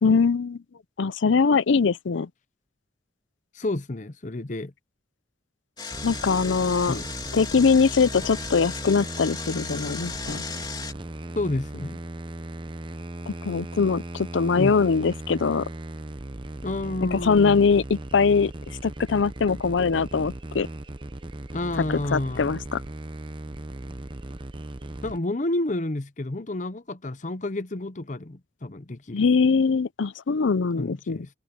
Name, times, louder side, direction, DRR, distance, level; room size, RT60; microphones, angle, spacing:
voice 1, 0.0-0.6 1.0-2.3 6.0-7.0 7.3-10.4 13.3-15.7 17.0-18.5 18.8-20.7 22.1-22.8 29.1-31.2, left 5 dB, 90° left, 0.5 m, -22 dB
voice 2, 3.5-4.7 6.9-7.1 11.3-12.0 14.6-14.8 16.6-17.6 21.5-22.6 25.0-29.3 30.8-31.3, left 2 dB, 40° left, 0.8 m, -30 dB
Engine, 5.8-10.9, left 5 dB, 25° left, 3.1 m, -36 dB
sound 1, 5.9-25.2, right 1 dB, 25° right, 0.9 m, -37 dB
head